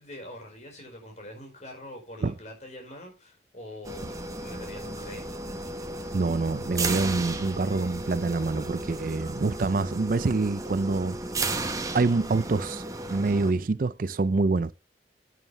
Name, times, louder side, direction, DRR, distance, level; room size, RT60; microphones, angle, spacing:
voice 1, 0.0-5.3, left 1 dB, 40° left, 4.7 m, -44 dB
sound 1, 3.8-13.5, right 2 dB, 20° right, 1.0 m, -34 dB
voice 2, 6.1-11.2 11.5-11.6 11.9-12.8 13.1-14.7, right 3 dB, 50° right, 0.4 m, -26 dB
11.0 x 9.2 x 3.2 m
head